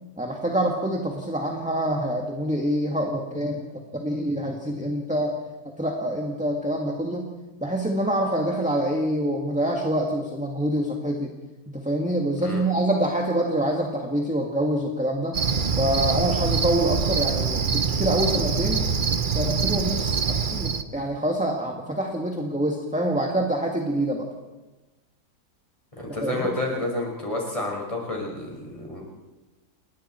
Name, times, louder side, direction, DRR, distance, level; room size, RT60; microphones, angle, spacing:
voice 1, 0.2-5.4 5.8-7.3 7.6-11.3 11.7-15.4 15.8-18.9 19.3-20.2 20.5-24.3 26.2-26.5, right 1 dB, 5° right, 1 dB, 1.9 m, -26 dB
Cricket, 15.3-20.8, right 5 dB, 40° right, 0.9 m, -24 dB
voice 2, 26.0-29.0, left 1 dB, 20° left, -1 dB, 5.6 m, -29 dB
29.5 x 21.0 x 4.5 m, 1.1 s
omnidirectional pair, 1.7 m